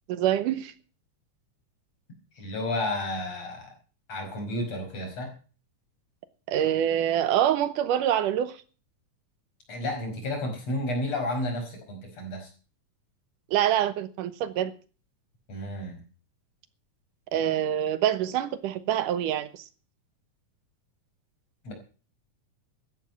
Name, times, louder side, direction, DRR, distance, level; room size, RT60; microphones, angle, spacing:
voice 1, 0.1-0.7 6.5-8.5 13.5-14.7 17.3-19.7, right 11 dB, 85° right, 13 dB, 2.7 m, -25 dB
voice 2, 2.4-3.7 4.1-5.3 9.7-12.5 15.5-16.0 21.6-21.7, left 1 dB, 50° left, 4 dB, 6.2 m, -31 dB
14.5 x 12.0 x 5.3 m, 0.38 s
omnidirectional pair, 3.7 m